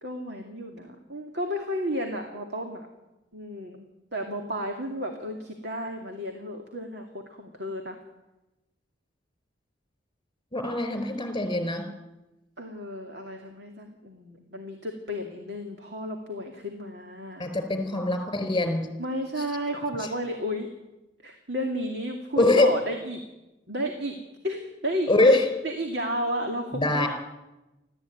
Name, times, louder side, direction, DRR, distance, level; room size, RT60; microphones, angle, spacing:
voice 1, 0.0-2.9 3.3-3.8 4.1-8.0 12.6-17.5 19.0-20.7 21.2-23.2 23.7-24.2 24.4-25.1 25.6-27.1, equal, 60° right, 3 dB, 2.5 m, -33 dB
voice 2, 10.5-11.9 17.4-18.9 22.4-22.7 25.1-25.5 26.7-27.1, left 2 dB, 25° left, 7 dB, 4.6 m, -23 dB
30.0 x 13.5 x 9.4 m, 1.0 s
head